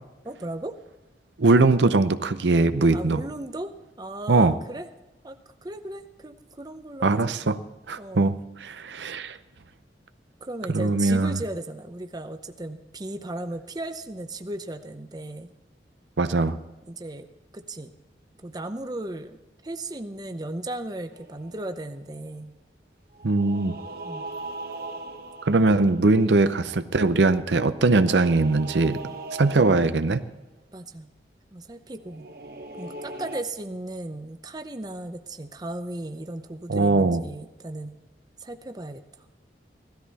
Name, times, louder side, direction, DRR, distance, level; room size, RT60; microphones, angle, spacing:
voice 1, 0.2-0.8 2.9-4.9 5.2-7.4 8.0-8.3 10.4-15.5 16.9-17.3 17.5-17.9 18.4-22.5 24.0-24.3 30.7-31.1 31.5-32.3 32.8-37.9 38.4-39.0, right 1 dB, 20° right, 8 dB, 0.7 m, -36 dB
voice 2, 1.4-3.2 4.3-4.5 7.0-7.6 7.9-9.4 10.7-11.4 16.2-16.6 23.2-23.8 25.5-29.1 29.4-30.2 36.7-37.2, right 3 dB, 85° right, 11 dB, 0.7 m, -21 dB
sound 1, 21.1-22.0 23.1-26.7 27.7-30.1 32.0-33.4, right 2 dB, 55° right, 1.2 m, -39 dB
16.5 x 13.0 x 4.1 m, 1.0 s
head